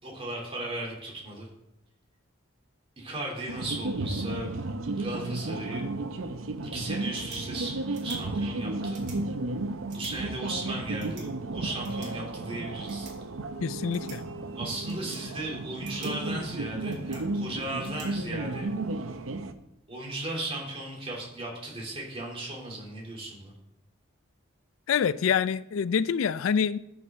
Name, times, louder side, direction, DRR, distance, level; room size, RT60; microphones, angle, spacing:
voice 1, 0.0-1.5 3.0-4.5 4.9-5.9 6.6-7.8 8.0-9.0 9.9-13.1 14.5-18.7 19.9-23.5, right 2 dB, 30° right, 2.6 m, -36 dB
sound 1, 3.5-19.5, right 2 dB, 85° right, 0.7 m, -33 dB
sound 2, 6.9-18.9, right 5 dB, 60° right, 3.7 m, -54 dB
voice 2, 13.6-14.2 24.9-26.8, left 7 dB, 85° left, 0.4 m, -26 dB
14.0 x 6.0 x 3.5 m
head